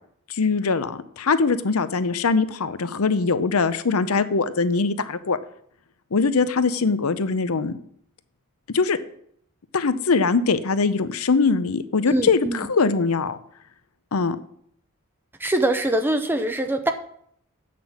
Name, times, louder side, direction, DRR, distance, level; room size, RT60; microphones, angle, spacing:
voice 1, 0.3-5.4 6.1-7.8 8.7-9.0 9.7-13.4 14.1-14.4, left 4 dB, 80° left, 13 dB, 0.7 m, -22 dB
voice 2, 12.1-12.7 15.4-16.9, right 1 dB, 10° right, 7 dB, 0.6 m, -23 dB
8.7 x 6.0 x 7.2 m, 0.67 s
head